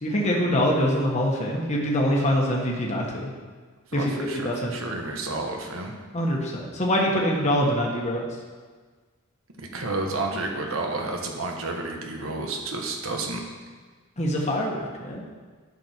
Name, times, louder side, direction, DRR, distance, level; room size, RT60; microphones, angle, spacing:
voice 1, 0.0-3.3 3.9-4.7 6.1-8.3 14.2-15.2, equal, 35° left, -2 dB, 1.4 m, -24 dB
voice 2, 3.9-5.9 9.6-13.4, right 2 dB, 70° right, 2 dB, 1.5 m, -31 dB
11.0 x 6.4 x 4.5 m, 1.5 s
head